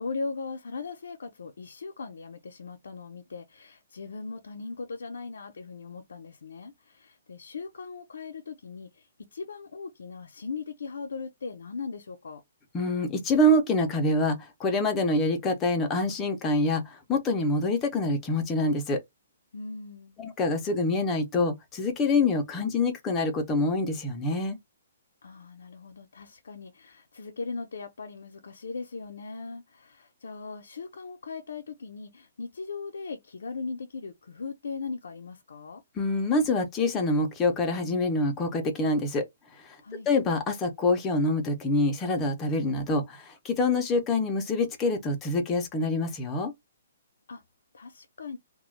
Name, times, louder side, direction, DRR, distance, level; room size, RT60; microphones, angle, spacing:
voice 1, 0.0-9.1 9.3-12.4 19.5-20.2 25.2-35.8 39.8-40.1 47.3-47.4 47.7-48.4, left 4 dB, 85° left, 0.6 m, -39 dB
voice 2, 12.7-19.0 20.2-24.6 36.0-39.2 40.1-46.5, left 2 dB, 15° left, 0.6 m, -26 dB
2.3 x 2.2 x 3.1 m
hypercardioid pair, 165°, 0 cm